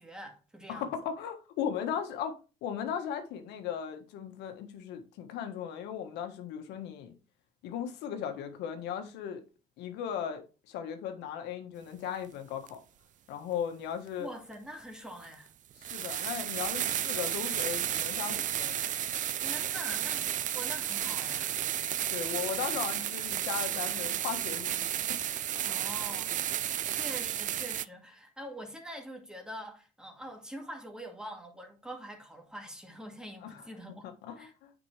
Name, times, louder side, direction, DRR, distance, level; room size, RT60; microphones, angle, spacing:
voice 1, 0.0-0.9 14.2-15.5 19.3-21.5 25.6-26.5 26.8-34.1 34.4-34.5, equal, 5° right, 2.2 m, -44 dB
voice 2, 0.7-7.1 7.6-9.4 9.8-12.8 13.3-14.3 15.8-18.8 22.1-24.8 33.4-33.6 34.0-34.7, left 8 dB, 85° left, 1.5 m, -37 dB
sound 1, 12.7-12.8 14.5-14.6 15.2-15.3 15.8-27.8, right 11 dB, 50° right, 0.5 m, -32 dB
9.2 x 5.2 x 3.3 m
cardioid pair, 110°, 17 cm